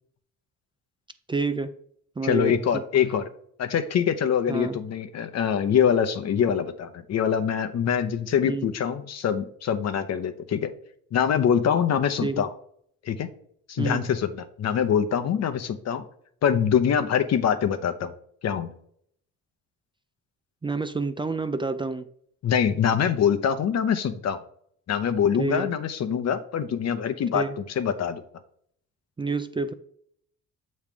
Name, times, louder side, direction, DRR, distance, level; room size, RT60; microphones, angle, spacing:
voice 1, 1.3-1.7 2.2-2.8 4.5-4.8 8.5-8.7 12.2-12.4 13.8-14.1 20.6-22.1 25.4-25.7 27.3-27.5 29.2-29.7, right 3 dB, 15° right, 9 dB, 0.4 m, -28 dB
voice 2, 2.2-3.3 3.6-10.7 11.1-12.5 13.0-13.3 13.7-16.0 16.4-18.1 18.4-18.7 22.4-24.4 24.9-27.4 27.8-28.2, left 8 dB, 60° left, 8 dB, 0.8 m, -24 dB
7.2 x 3.2 x 5.3 m, 0.65 s
cardioid pair, 90°, 30 cm